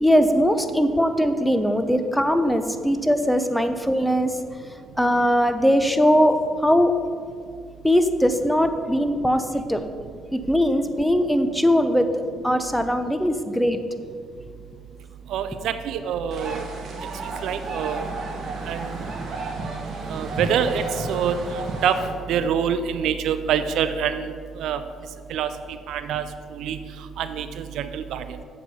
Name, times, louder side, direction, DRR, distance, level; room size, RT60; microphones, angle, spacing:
voice 1, 0.0-4.4 5.0-6.9 7.8-9.8 10.3-13.8, equal, 5° left, 8 dB, 0.7 m, -20 dB
voice 2, 15.3-16.6 17.4-18.0 18.7-18.9 20.1-22.0 22.3-24.3 24.6-24.8 25.3-25.5 25.9-26.2 26.6-26.8 27.2-28.2, right 8 dB, 75° right, 11 dB, 0.5 m, -25 dB
sound 1, 16.3-22.1, right 2 dB, 55° right, 1.4 m, -32 dB
7.2 x 4.7 x 6.9 m, 2.1 s
supercardioid pair, 75°, 0 cm